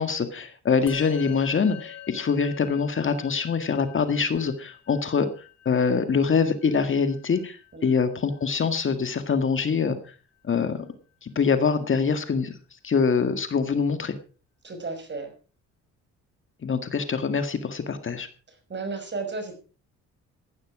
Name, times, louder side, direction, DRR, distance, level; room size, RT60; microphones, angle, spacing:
voice 1, 0.0-5.3 5.7-10.0 10.4-10.8 11.2-12.5 12.8-14.1 16.6-18.3, left 5 dB, 40° left, 9 dB, 1.9 m, -24 dB
Musical instrument, 0.9-10.4, left 11 dB, 60° left, 3.3 m, -46 dB
voice 2, 14.6-15.3 18.5-19.6, right 3 dB, 35° right, 7 dB, 5.8 m, -34 dB
15.5 x 11.5 x 4.9 m, 0.37 s
cardioid pair, 90°, 30 cm